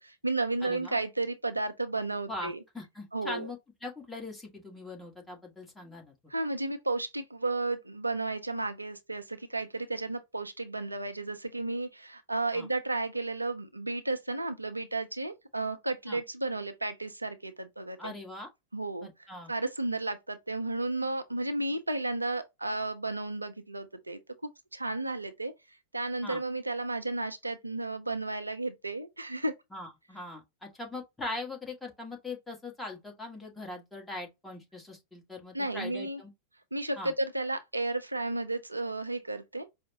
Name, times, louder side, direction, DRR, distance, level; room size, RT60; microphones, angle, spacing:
voice 1, 0.0-2.6 3.1-3.5 6.3-18.1 18.7-24.2 24.7-25.5 25.9-29.5 35.5-36.2 36.7-39.7, right 2 dB, 85° right, 0.5 m, -33 dB
voice 2, 0.6-1.0 2.3-6.1 12.5-12.7 16.1-16.2 18.0-18.5 19.0-19.5 26.2-26.4 29.7-36.3 37.0-37.1, left 2 dB, 10° left, 1.3 m, -41 dB
4.8 x 2.1 x 2.7 m
figure-of-eight pair, 90°, 0 cm